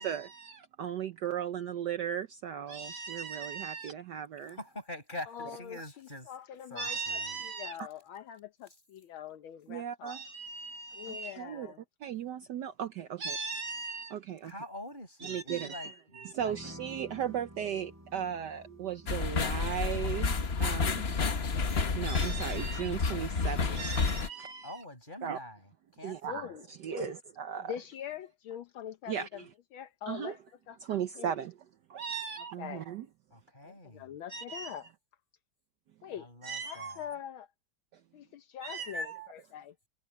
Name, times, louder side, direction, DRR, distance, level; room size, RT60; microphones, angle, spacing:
voice 1, 0.0-4.6 6.8-7.8 9.7-11.7 12.0-14.5 15.2-21.2 21.9-24.8 25.2-25.4 26.0-26.5 26.8-27.7 29.1-29.5 30.1-30.4 30.8-31.5 31.9-33.1 34.3-34.7 36.4-37.0 38.6-39.3, right 8 dB, 65° right, 1.2 m, -37 dB
voice 2, 4.4-6.3 6.7-7.4 14.4-16.6 24.6-26.5 33.3-34.2 36.1-37.1, left 1 dB, 20° left, 7.8 m, -45 dB
voice 3, 5.3-10.3 10.9-11.8 26.3-27.1 27.5-29.4 29.7-30.4 30.7-31.3 32.6-32.9 33.6-34.9 36.0-36.3 36.6-37.5 38.1-39.7, left 9 dB, 75° left, 1.7 m, -43 dB
sound 1, 16.4-24.2, equal, 5° right, 4.4 m, -54 dB
sound 2, 19.1-24.3, left 4 dB, 35° left, 1.1 m, -30 dB
omnidirectional pair, 2.3 m